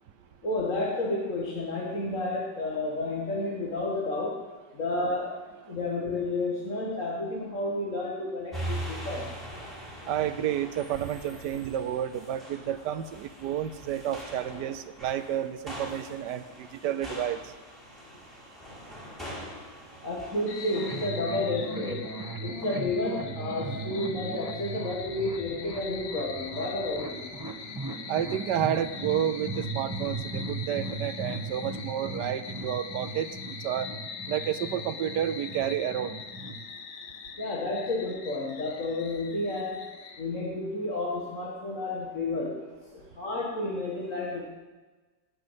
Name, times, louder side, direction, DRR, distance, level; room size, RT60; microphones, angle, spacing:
voice 1, 0.4-4.4 4.7-9.3 20.0-22.0 22.4-27.3 37.4-39.9 40.2-42.7 43.2-44.5, left 2 dB, 45° left, -4 dB, 2.1 m, -31 dB
sound 1, 8.5-21.1, right 1 dB, ahead, 4.3 m, -42 dB
voice 2, 10.1-17.5 28.1-33.9 34.3-36.2, right 10 dB, 75° right, 12 dB, 1.3 m, -30 dB
sound 2, 20.5-40.2, left 6 dB, 65° left, 1.6 m, -42 dB
sound 3, 20.7-36.6, right 3 dB, 15° right, 0.9 m, -38 dB
19.5 x 6.5 x 8.1 m, 1.3 s
omnidirectional pair, 1.9 m